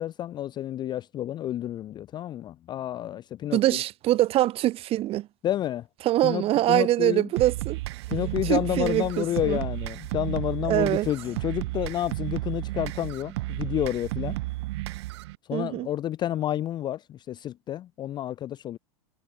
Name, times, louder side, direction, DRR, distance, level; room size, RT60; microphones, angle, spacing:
voice 1, 0.0-3.8 5.4-5.9 6.2-7.3 8.1-14.4 15.5-18.8, left 12 dB, 30° left, 0.4 m, -30 dB
voice 2, 3.5-5.3 6.0-7.8 8.5-9.6 10.7-11.1 15.5-15.9, right 15 dB, 40° right, 0.9 m, -24 dB
sound 1, 7.4-15.4, right 20 dB, 60° right, 0.6 m, -33 dB
hypercardioid pair, 90°, 15 cm